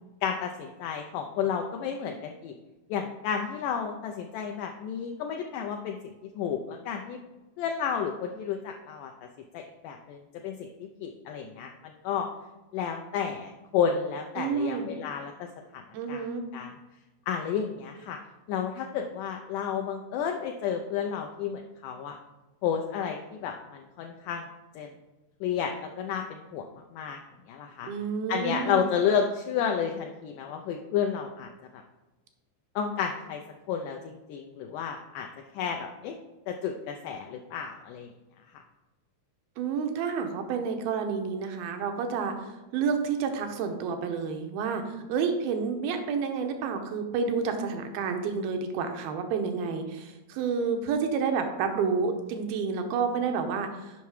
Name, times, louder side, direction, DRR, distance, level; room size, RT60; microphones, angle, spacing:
voice 1, 0.2-2.6 2.9-7.2 7.6-9.1 9.5-12.3 12.7-15.5 15.7-15.8 16.1-16.3 16.5-16.7 17.3-18.2 18.5-22.2 22.6-24.5 24.8-24.9 25.4-26.7 26.9-27.2 27.5-27.9 28.3-31.8 32.8-33.4 33.7-35.3 35.5-36.2 36.5-38.1, left 7 dB, 85° left, 3 dB, 1.8 m, -31 dB
voice 2, 14.4-14.9 15.9-16.5 27.9-28.9 39.6-54.1, right 5 dB, 90° right, 5 dB, 2.6 m, -30 dB
7.0 x 5.6 x 4.7 m, 1.1 s
omnidirectional pair, 4.3 m